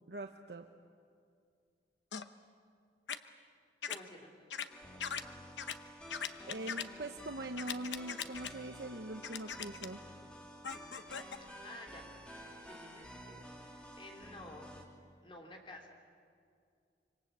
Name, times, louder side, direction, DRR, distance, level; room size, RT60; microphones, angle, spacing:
voice 1, 0.1-0.7 6.5-10.1, right 2 dB, 65° right, 5 dB, 1.0 m, -43 dB
sound 1, 2.1-2.3 3.1-3.2 3.8-4.0 4.5-4.7 5.0-5.2 5.6-5.7 6.1-6.8 7.6-8.5 9.2-9.9 10.6-11.4, left 7 dB, 90° left, 1.0 m, -39 dB
voice 2, 3.8-4.5 11.4-12.1 12.6-14.7 15.2-16.0, left 1 dB, 30° left, 1 dB, 3.2 m, -52 dB
sound 2, 4.7-14.8, equal, 5° left, 2.5 m, -51 dB
26.0 x 25.0 x 8.3 m, 2.3 s
head